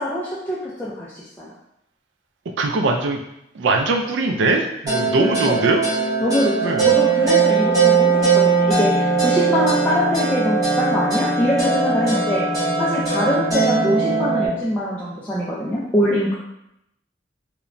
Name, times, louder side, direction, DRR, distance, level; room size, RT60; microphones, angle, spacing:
voice 1, 0.0-1.5 5.5-5.6 6.2-12.4 12.8-16.4, equal, 10° left, -8 dB, 0.3 m, -23 dB
voice 2, 2.6-3.2 3.5-5.8 6.6-6.9, right 3 dB, 75° right, 3 dB, 0.3 m, -21 dB
sound 1, 4.9-14.5, right 4 dB, 20° right, 1.0 m, -19 dB
2.9 x 2.1 x 2.5 m, 0.81 s
head